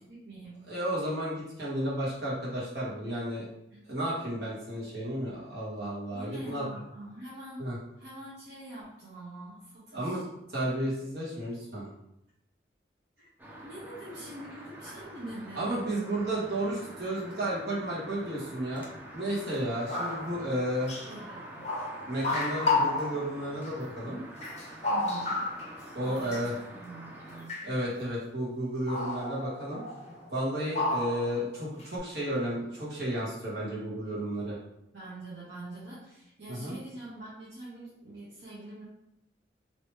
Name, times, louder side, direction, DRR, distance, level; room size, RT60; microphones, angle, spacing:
voice 1, 0.0-0.7 3.7-3.8 6.1-7.6 8.0-10.3 13.2-13.3 13.6-15.7 21.0-21.7 22.0-22.1 24.9-25.4 25.8-27.6 34.9-38.8, right 1 dB, 85° right, -9 dB, 1.0 m, -45 dB
voice 2, 0.7-3.5 3.9-6.6 7.6-7.8 9.9-11.9 15.5-18.8 19.1-20.9 22.0-24.2 25.9-26.5 27.6-29.8 30.3-34.6 36.5-36.7, right 1 dB, 65° right, -7 dB, 1.5 m, -32 dB
sound 1, 13.4-27.5, right 1 dB, 10° right, 0.5 m, -47 dB
sound 2, 19.5-19.6 19.9-20.5 20.9-21.1 21.6-23.4 23.7-23.8 24.4-25.9 26.2-26.5 27.5-27.8 28.9-30.3 30.7-31.5 31.8-32.0, left 2 dB, 40° left, 0.6 m, -31 dB
3.1 x 3.0 x 3.2 m, 0.81 s
head